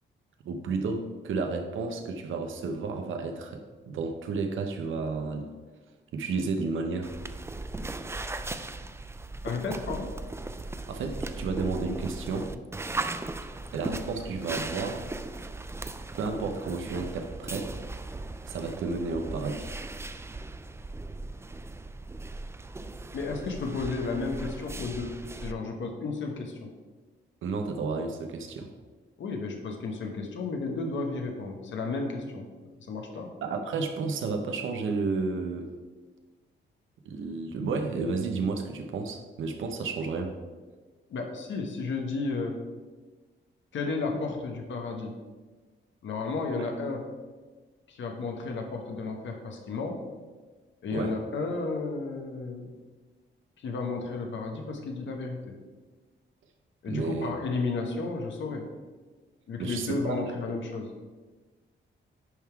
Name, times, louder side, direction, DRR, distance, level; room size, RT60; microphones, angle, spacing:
voice 1, 0.4-5.5 6.1-7.1 10.9-12.5 13.7-15.0 16.1-17.8 18.5-19.7 27.4-28.7 33.4-35.7 37.0-40.3 46.6-46.7 50.9-51.2 56.9-57.3 59.6-60.2, right 4 dB, 85° right, 5 dB, 0.8 m, -32 dB
sound 1, 7.0-25.5, right 2 dB, 15° right, 0.4 m, -38 dB
voice 2, 9.4-10.1 23.1-26.7 29.2-32.5 32.8-33.3 41.1-42.6 43.7-45.2 46.0-47.0 47.9-50.0 50.8-52.7 53.6-55.6 56.8-58.6 59.5-60.9, left 3 dB, 70° left, 2 dB, 1.2 m, -33 dB
10.5 x 3.6 x 4.6 m, 1.3 s
cardioid pair, 105°, 20 cm